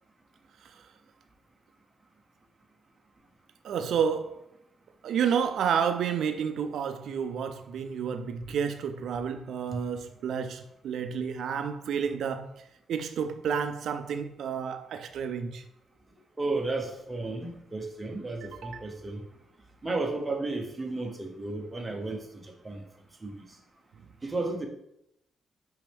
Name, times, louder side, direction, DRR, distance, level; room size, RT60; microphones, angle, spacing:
voice 1, 3.6-4.4 5.0-15.7 18.5-18.8, right 7 dB, 70° right, 0.3 m, -30 dB
voice 2, 16.4-19.2 19.8-22.2 22.6-22.8 23.2-23.3 24.2-24.7, right 2 dB, 15° right, 0.9 m, -33 dB
6.0 x 5.3 x 3.4 m
cardioid pair, 145°, 0 cm